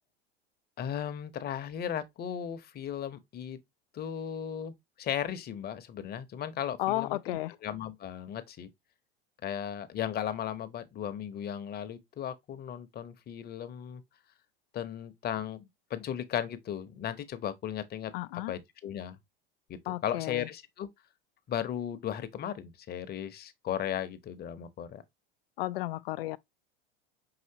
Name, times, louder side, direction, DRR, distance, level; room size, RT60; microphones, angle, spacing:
voice 1, 0.8-3.6 3.9-8.7 9.4-14.0 14.7-19.2 19.7-20.9 21.5-25.0, left 9 dB, 35° left, 0.8 m, -36 dB
voice 2, 6.8-7.5 18.1-18.5 19.9-20.5 25.6-26.4, left 17 dB, 80° left, 0.4 m, -33 dB
5.8 x 3.0 x 2.7 m
hypercardioid pair, 100°, 29 cm